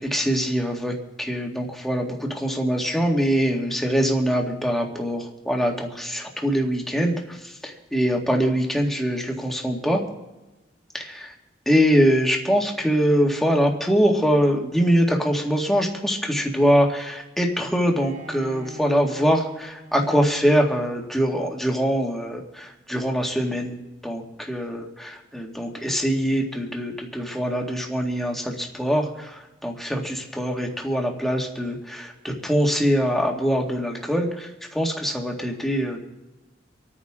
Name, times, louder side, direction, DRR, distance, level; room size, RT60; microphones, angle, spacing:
voice 1, 0.1-10.0 10.9-11.3 11.7-23.7 24.0-36.1, equal, ahead, 0 dB, 1.9 m, -23 dB
Bowed string instrument, 17.9-20.9, right 2 dB, 55° right, 4.7 m, -43 dB
26.5 x 9.4 x 3.7 m, 1.1 s
head